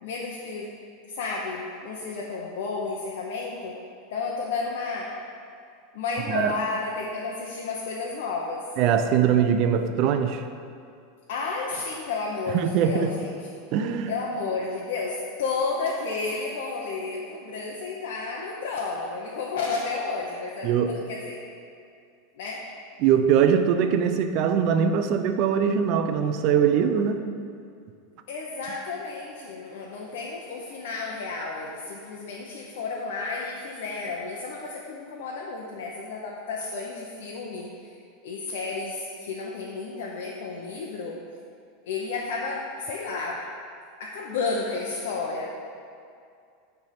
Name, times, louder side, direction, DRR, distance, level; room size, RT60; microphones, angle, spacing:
voice 1, 0.0-0.7 1.1-3.8 4.1-5.1 5.9-8.7 11.3-13.4 14.0-21.4 22.4-22.6 28.3-38.0 38.2-41.2 41.8-43.4 44.0-45.5, left 4 dB, 75° left, -3 dB, 0.9 m, -32 dB
voice 2, 8.8-10.4 12.5-13.1 13.7-14.1 20.6-21.0 23.0-27.2, right 8 dB, 45° right, 8 dB, 0.5 m, -22 dB
10.5 x 3.5 x 5.8 m, 2.4 s
supercardioid pair, 145°, 0 cm